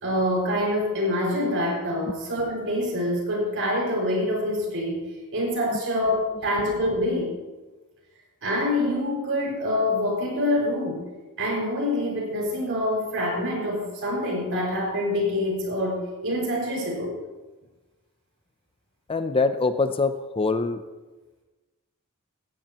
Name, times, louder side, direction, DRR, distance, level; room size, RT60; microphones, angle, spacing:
voice 1, 0.0-5.0 5.3-7.3 8.4-11.0 11.4-17.1, left 1 dB, 60° right, -2 dB, 5.6 m, -26 dB
voice 2, 19.1-20.8, left 3 dB, 25° left, 10 dB, 0.5 m, -24 dB
18.0 x 15.5 x 3.0 m, 1.2 s
head